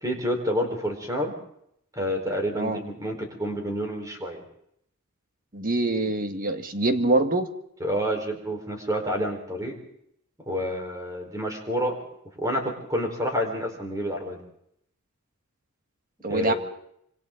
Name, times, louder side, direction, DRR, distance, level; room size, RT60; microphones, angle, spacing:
voice 1, 0.0-1.3 1.9-4.4 7.8-9.7 10.4-11.9 12.4-14.4 16.3-16.6, equal, 15° right, 2 dB, 4.4 m, -28 dB
voice 2, 5.5-7.5 16.2-16.5, right 2 dB, 40° right, 7 dB, 1.6 m, -24 dB
26.5 x 25.5 x 3.9 m, 0.72 s
head